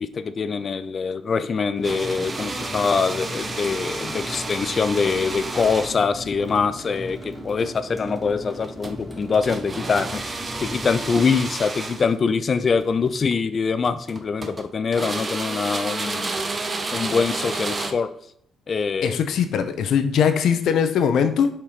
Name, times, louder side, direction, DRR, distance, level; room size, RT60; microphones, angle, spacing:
voice 1, 0.0-16.3 16.9-18.1 18.7-19.2, left 5 dB, 40° left, 12 dB, 0.5 m, -24 dB
sound 1, 1.7-13.2, equal, 10° right, 1.4 m, -37 dB
sound 2, 1.8-6.2 8.5-9.0 9.4-12.1 13.2-13.3 13.8-14.7 14.9-17.9, right 3 dB, 30° right, 0.8 m, -31 dB
voice 2, 19.0-21.5, left 7 dB, 75° left, 9 dB, 0.8 m, -20 dB
5.0 x 4.4 x 5.6 m, 0.66 s
cardioid pair, 90°, 0 cm